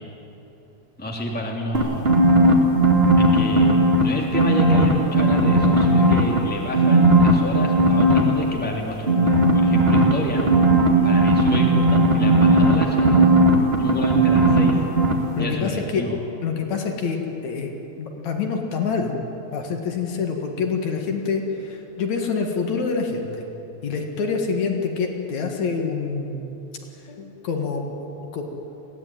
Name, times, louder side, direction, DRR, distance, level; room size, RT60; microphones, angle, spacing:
voice 1, 1.0-2.2 3.2-10.4 11.0-13.2 13.8-14.8 15.4-16.2, left 1 dB, 5° left, -1 dB, 2.2 m, -29 dB
sound 1, 1.7-4.0 4.3-6.4 6.7-8.2 9.1-14.7 15.0-15.1, right 2 dB, 25° right, 1.9 m, -16 dB
voice 2, 15.4-16.0 16.4-17.7 18.0-19.2 19.5-23.5 23.8-26.4 27.1-27.8 28.3-28.4, left 5 dB, 75° left, 3 dB, 3.1 m, -26 dB
21.5 x 16.0 x 9.1 m, 3.0 s
omnidirectional pair, 3.3 m